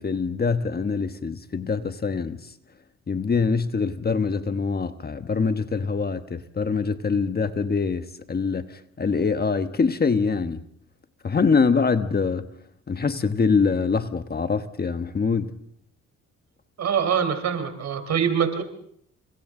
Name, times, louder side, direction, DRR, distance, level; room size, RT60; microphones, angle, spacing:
voice 1, 0.0-2.4 3.1-10.6 11.2-12.5 12.9-15.5, left 5 dB, 30° left, 1.3 m, -24 dB
voice 2, 16.8-18.6, right 7 dB, 60° right, 4.0 m, -24 dB
28.5 x 26.0 x 3.8 m
cardioid pair, 90°, 30 cm